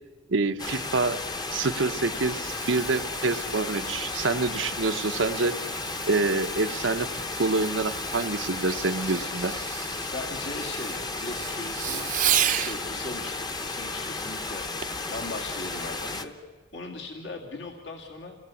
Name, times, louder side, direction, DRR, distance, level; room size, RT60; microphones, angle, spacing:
voice 1, 0.3-1.2 1.5-5.5 6.1-7.1 7.4-9.5, right 3 dB, 80° right, 8 dB, 0.9 m, -26 dB
sound 1, 0.6-16.3, left 3 dB, 20° left, 0.9 m, -33 dB
Fireworks, 2.1-12.8 14.8-15.1 15.7-15.8, right 11 dB, 45° right, 0.7 m, -34 dB
voice 2, 10.1-12.1 12.5-14.7 15.1-16.4 16.7-18.4, left 2 dB, 70° left, 2 dB, 2.3 m, -39 dB
28.5 x 18.0 x 8.5 m, 1.4 s
head